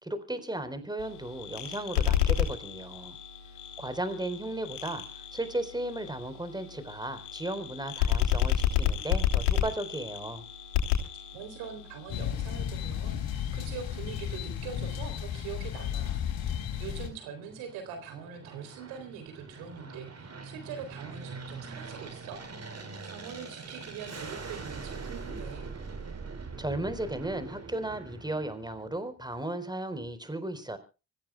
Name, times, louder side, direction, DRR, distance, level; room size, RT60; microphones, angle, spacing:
voice 1, 0.0-3.2 3.8-10.4 26.6-30.8, right 1 dB, 10° right, 10 dB, 4.2 m, -35 dB
sound 1, 1.0-12.3, left 10 dB, 90° left, 3.3 m, -31 dB
voice 2, 11.3-16.3 16.8-22.4 23.0-25.7, right 7 dB, 85° right, 7 dB, 3.7 m, -43 dB
sound 2, 12.1-17.1, left 9 dB, 70° left, 4.0 m, -34 dB
Aircraft, 16.3-29.0, right 4 dB, 45° right, 5.7 m, -43 dB
25.5 x 15.5 x 2.4 m, 0.33 s
hypercardioid pair, 50°, 37 cm